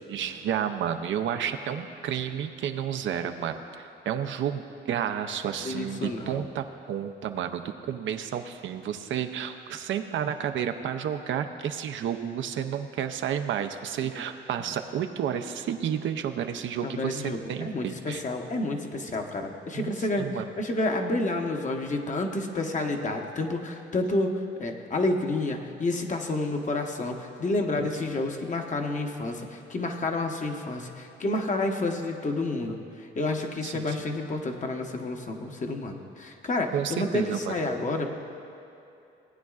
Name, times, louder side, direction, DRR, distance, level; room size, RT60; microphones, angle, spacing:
voice 1, 0.1-18.2 19.7-19.9 20.2-20.4 27.8-27.9 33.6-34.0 36.7-37.5, right 9 dB, 70° right, 7 dB, 0.6 m, -31 dB
voice 2, 5.6-6.5 16.8-20.3 20.6-38.1, left 2 dB, 40° left, 3 dB, 1.0 m, -30 dB
18.0 x 9.2 x 2.4 m, 2.8 s
cardioid pair, 90°, 20 cm